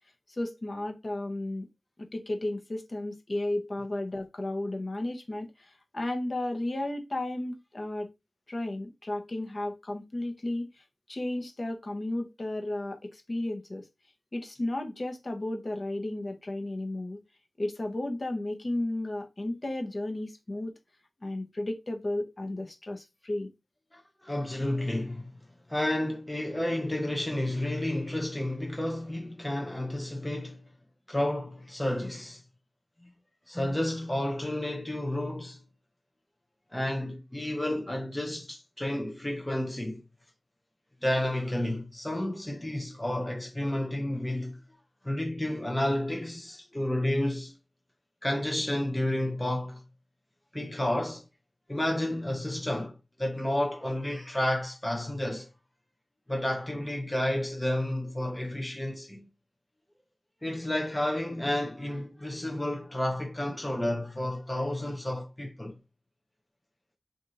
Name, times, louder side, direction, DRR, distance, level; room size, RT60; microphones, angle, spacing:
voice 1, 0.3-1.7 2.1-8.1 8.5-13.9 14.3-17.2 17.6-20.7 21.2-23.5, left 1 dB, 45° left, 0.8 m, -33 dB
voice 2, 23.9-25.3 25.7-30.6 31.1-32.4 33.0-33.1 33.5-35.6 36.7-40.0 41.0-44.6 45.0-47.6 48.2-49.8 50.5-51.2 51.7-55.5 56.3-59.3 60.4-65.8, left 1 dB, 15° left, 0.6 m, -31 dB
3.1 x 2.5 x 3.8 m
wide cardioid pair, 90°, 0 cm